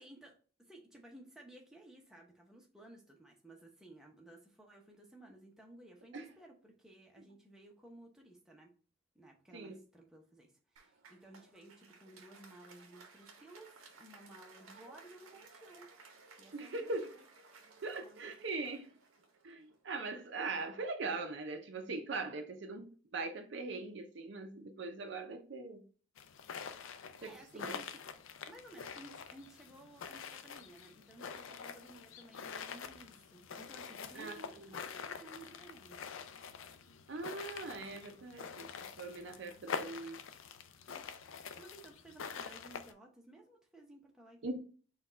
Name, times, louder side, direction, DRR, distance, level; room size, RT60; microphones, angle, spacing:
voice 1, 0.0-8.7 9.1-15.9 16.4-17.2 17.7-17.8 18.0-18.2 27.0-28.0 28.5-36.0 40.9-41.1 41.6-44.4, right 1 dB, 5° right, 0.7 m, -56 dB
Applause, 10.8-20.1, right 4 dB, 85° right, 0.8 m, -59 dB
voice 2, 16.5-17.1 17.8-18.9 19.4-25.8 27.2-27.8 34.1-34.4 34.6-34.7 37.1-40.2 44.4-44.6, right 3 dB, 60° right, 0.5 m, -41 dB
sound 1, 26.2-42.9, left 6 dB, 75° left, 0.4 m, -46 dB
4.2 x 2.3 x 4.1 m
head